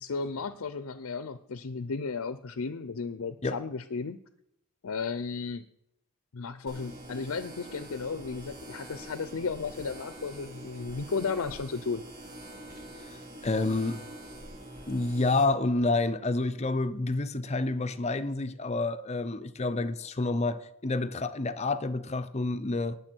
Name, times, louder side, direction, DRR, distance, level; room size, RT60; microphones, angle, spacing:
voice 1, 0.0-4.2 4.8-5.6 6.3-12.0, left 4 dB, 75° left, 0.6 m, -34 dB
sound 1, 6.7-15.4, right 1 dB, 40° right, 3.5 m, -45 dB
voice 2, 13.1-14.0 14.9-23.0, left 2 dB, 30° left, 0.6 m, -29 dB
19.0 x 7.0 x 4.5 m
head